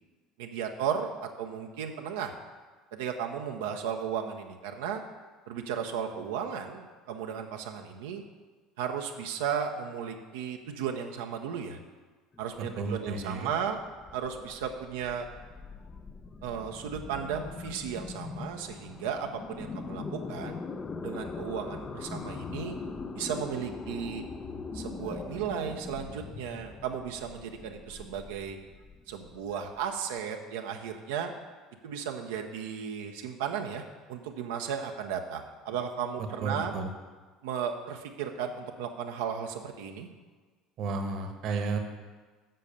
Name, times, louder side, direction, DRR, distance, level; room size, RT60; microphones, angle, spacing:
voice 1, 0.4-2.3 2.9-5.0 5.5-8.2 8.8-11.8 12.4-13.8 14.1-15.3 16.4-20.6 21.0-22.8 23.1-24.2 24.7-28.6 29.1-31.3 31.8-33.8 34.1-36.7 37.4-40.1, right 7 dB, 70° right, 3 dB, 0.7 m, -35 dB
sound 1, 12.3-30.1, left 4 dB, 30° left, 0.6 m, -42 dB
voice 2, 12.8-13.5 36.4-36.9 40.8-41.8, right 4 dB, 55° right, 6 dB, 1.2 m, -32 dB
7.6 x 6.5 x 6.8 m, 1.4 s
hypercardioid pair, 65°, 0 cm